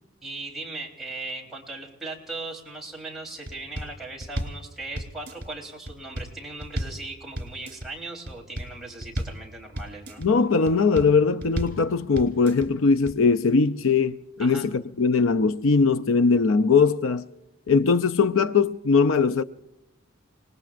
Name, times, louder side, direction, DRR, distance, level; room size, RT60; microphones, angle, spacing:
voice 1, 0.2-10.2 14.4-14.7, right 2 dB, ahead, 3.5 m, -38 dB
sound 1, 3.5-3.9 4.2-4.6 5.0-5.5 5.9-6.3 6.6-7.0 7.4-7.9 8.3-8.7 9.0-9.4 9.8-10.3 10.7-11.1 11.4-11.8 12.2-12.7 13.1-13.2, equal, 50° right, 3.3 m, -33 dB
voice 2, 10.2-17.3 17.7-19.4, left 4 dB, 80° left, 0.5 m, -20 dB
29.5 x 19.0 x 2.5 m
head